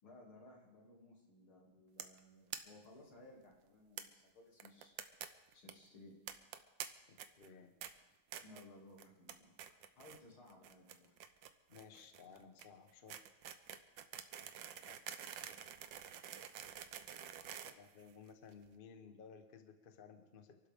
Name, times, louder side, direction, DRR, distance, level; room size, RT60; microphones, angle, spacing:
voice 1, 0.0-4.9 5.5-6.2 8.4-11.2, left 2 dB, 85° left, -1 dB, 3.5 m, -60 dB
sound 1, 2.0-2.2 2.5-2.6 2.9-3.0 3.2-3.3 4.0-4.1 4.6-5.3 5.5-5.7 6.3-6.9 7.2-7.5 7.8-7.9 8.3-8.6 9.0-9.3 9.6-10.2 10.5-18.5, right 9 dB, 70° right, 1.4 m, -48 dB
voice 2, 7.1-7.8 11.7-13.1 14.9-15.0 17.8-20.6, left 6 dB, 35° left, 7 dB, 1.0 m, -57 dB
27.5 x 12.0 x 3.6 m, 1.1 s
omnidirectional pair, 2.2 m